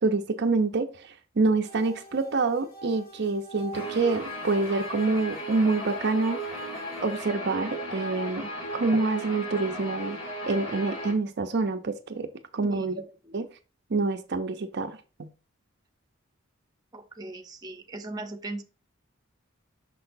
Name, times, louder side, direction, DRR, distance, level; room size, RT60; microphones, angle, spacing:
voice 1, 0.0-6.7 7.0-10.2 10.5-12.3 12.5-12.9 13.3-13.5 13.9-15.3, right 3 dB, 55° right, 0.6 m, -27 dB
sound 1, 1.6-7.3, right 1 dB, 45° left, 1.5 m, -48 dB
Guitar, 3.7-11.1, equal, 75° left, 3.6 m, -35 dB
voice 2, 12.6-13.4 16.9-18.6, right 2 dB, 20° right, 0.8 m, -39 dB
6.1 x 5.8 x 2.6 m
head